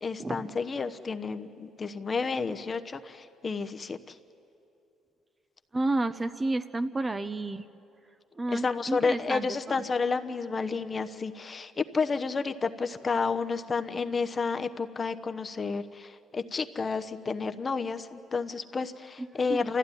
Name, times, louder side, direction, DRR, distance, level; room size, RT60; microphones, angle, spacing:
voice 1, 0.0-4.2 8.5-19.8, left 4 dB, 35° left, 8 dB, 1.0 m, -31 dB
voice 2, 5.7-7.6 8.4-9.9 19.5-19.7, right 2 dB, 25° right, 10 dB, 0.8 m, -31 dB
28.0 x 14.5 x 9.9 m, 2.7 s
supercardioid pair, 80°, 0 cm